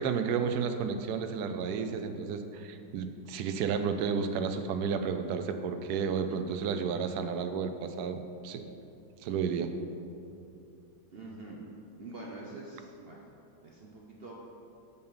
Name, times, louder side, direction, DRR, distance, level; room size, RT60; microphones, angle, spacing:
voice 1, 0.0-8.6 9.2-9.7, right 6 dB, 70° right, 7 dB, 1.0 m, -32 dB
voice 2, 11.1-11.6 12.0-13.2 13.6-14.3, right 2 dB, 55° right, -3 dB, 0.6 m, -45 dB
6.9 x 5.4 x 5.5 m, 2.7 s
omnidirectional pair, 1.9 m